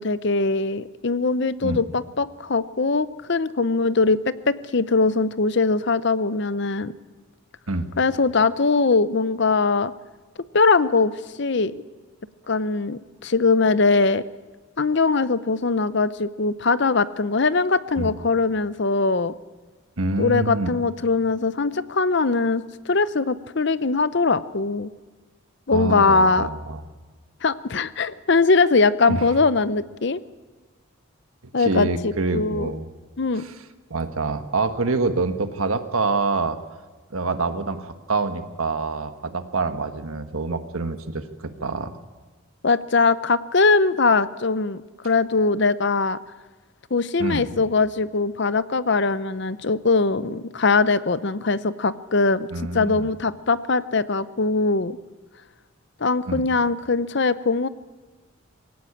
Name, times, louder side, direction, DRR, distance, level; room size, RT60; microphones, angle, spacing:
voice 1, 0.0-6.9 8.0-9.9 10.5-11.1 11.4-11.8 12.5-14.2 14.8-19.3 20.2-24.9 25.7-26.5 27.4-30.2 31.5-32.7 33.2-33.4 42.6-46.2 46.9-52.5 52.7-55.0 56.0-57.7, left 3 dB, 55° left, 15 dB, 0.7 m, -21 dB
voice 2, 20.0-20.7 25.7-26.8 29.1-29.3 31.6-32.9 33.4-33.6 33.9-36.6 37.1-42.0 47.2-47.6 52.5-53.1 56.3-56.5, right 3 dB, 80° right, 8 dB, 1.5 m, -26 dB
21.0 x 17.5 x 8.7 m, 1.3 s
head